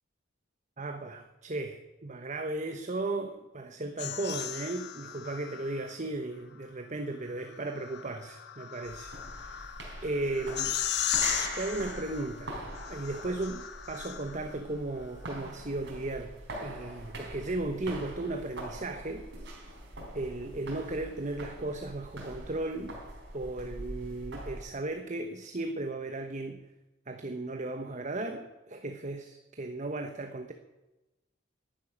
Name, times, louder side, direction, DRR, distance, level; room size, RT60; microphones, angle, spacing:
voice 1, 0.8-10.8 11.5-12.5 12.9-19.3 20.1-23.0 23.3-26.7 27.1-30.5, right 2 dB, 35° right, 7 dB, 1.0 m, -36 dB
sound 1, 4.0-5.9 7.4-14.6, left 11 dB, 55° left, 1.2 m, -36 dB
sound 2, 8.8-24.7, right 1 dB, 60° right, 4.2 m, -43 dB
11.5 x 11.5 x 9.9 m, 1.0 s
head